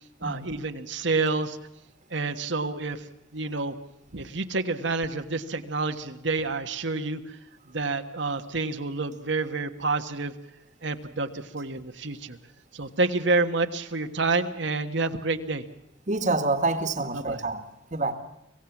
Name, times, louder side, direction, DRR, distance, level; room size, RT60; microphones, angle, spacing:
voice 1, 0.2-1.6 2.1-3.0 3.3-3.7 4.1-7.4 7.7-10.3 10.8-12.4 12.7-15.6 17.0-17.4, right 3 dB, 60° right, 7 dB, 1.4 m, -28 dB
voice 2, 16.1-17.6 17.9-18.1, right 3 dB, 35° right, 10 dB, 1.8 m, -27 dB
25.5 x 17.0 x 7.2 m, 0.84 s
head